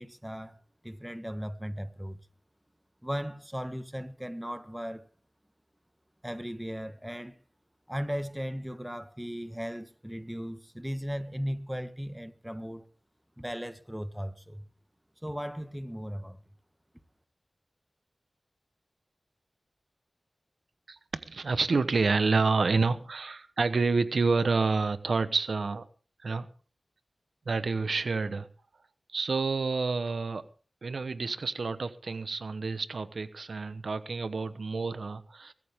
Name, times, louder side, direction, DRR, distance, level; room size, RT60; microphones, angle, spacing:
voice 1, 0.0-2.2 3.0-5.1 6.2-7.4 7.9-12.8 13.4-14.6 15.2-16.4, equal, 5° right, 1.4 m, -37 dB
voice 2, 20.9-25.8 26.2-26.5 27.5-28.5 29.1-30.5 30.8-35.5, right 4 dB, 80° right, 1.0 m, -28 dB
22.0 x 13.5 x 3.7 m
wide cardioid pair, 60°, 0 cm